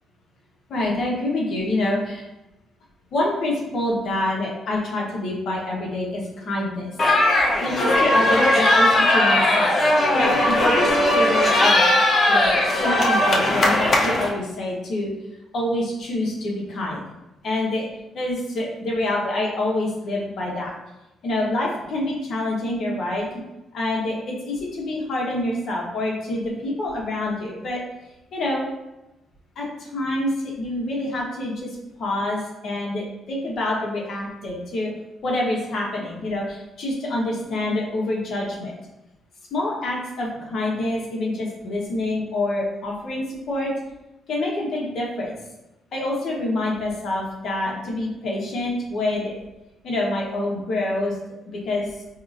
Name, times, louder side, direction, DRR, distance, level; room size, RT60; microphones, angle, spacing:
voice 1, 0.7-2.2 3.1-6.9 7.6-11.9 12.3-15.1 15.5-17.0 17.4-17.9 18.1-20.8 21.2-23.3 23.7-27.8 28.3-28.7 29.6-34.9 35.2-38.7 39.5-43.7 44.3-45.4 45.9-49.3 49.8-51.2 51.6-51.9, left 1 dB, 60° left, -2 dB, 1.0 m, -26 dB
sound 1, 7.0-14.3, left 1 dB, 45° left, 0.6 m, -18 dB
4.7 x 2.5 x 2.5 m, 0.96 s
cardioid pair, 90°, 0 cm